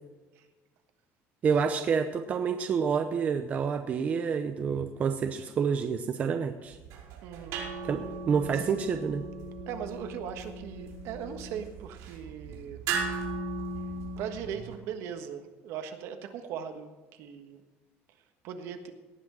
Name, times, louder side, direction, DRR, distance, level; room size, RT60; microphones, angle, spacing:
voice 1, 1.4-6.8 7.9-9.2, right 6 dB, 30° right, 7 dB, 0.7 m, -28 dB
sound 1, 6.7-14.7, right 3 dB, 80° right, 5.0 m, -37 dB
voice 2, 7.2-7.6 9.7-12.8 14.2-17.6 18.4-18.9, right 8 dB, 65° right, 7 dB, 1.4 m, -39 dB
18.0 x 6.3 x 6.3 m, 1.2 s
cardioid pair, 165°, 5 cm